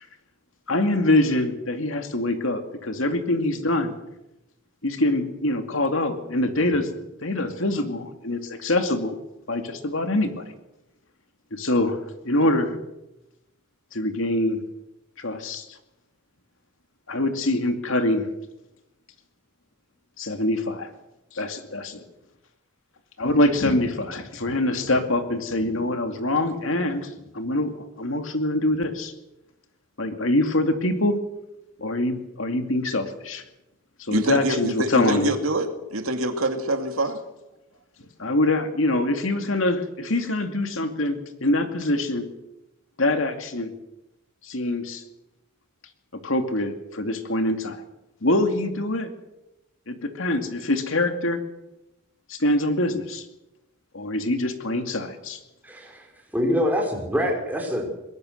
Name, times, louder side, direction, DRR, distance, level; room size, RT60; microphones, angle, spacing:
voice 1, 0.7-3.9 4.8-6.9 7.2-9.2 9.5-10.4 11.5-12.0 12.2-12.8 13.9-14.6 15.2-15.7 17.1-18.3 20.2-20.9 21.3-22.0 23.2-29.1 30.0-31.2 31.8-33.4 34.1-35.3 38.2-42.3 43.0-43.7 44.4-45.0 46.2-47.8 48.2-49.1 49.9-51.4 52.3-53.2 53.9-55.4, left 1 dB, 65° left, 6 dB, 2.4 m, -24 dB
voice 2, 34.1-37.2 38.3-38.4, right 2 dB, 80° right, 6 dB, 2.5 m, -25 dB
voice 3, 55.6-56.0 56.3-57.9, equal, 10° right, 0 dB, 5.0 m, -25 dB
23.0 x 21.0 x 6.6 m, 0.94 s
head